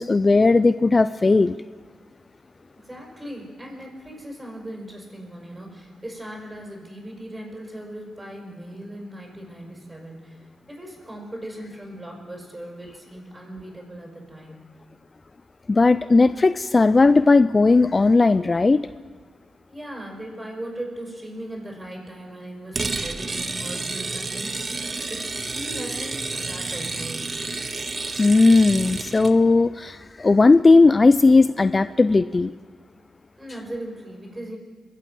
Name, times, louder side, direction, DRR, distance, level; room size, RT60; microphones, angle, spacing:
voice 1, 0.0-1.6 15.7-18.9 28.2-32.5, left 3 dB, 35° left, 14 dB, 0.3 m, -17 dB
voice 2, 2.8-14.6 19.7-24.8 25.1-27.2 33.4-34.6, right 1 dB, 15° right, -1 dB, 5.7 m, -38 dB
sound 1, 22.7-29.3, right 3 dB, 35° right, 1.0 m, -30 dB
22.0 x 8.3 x 6.0 m, 1.5 s
cardioid pair, 60°, 0 cm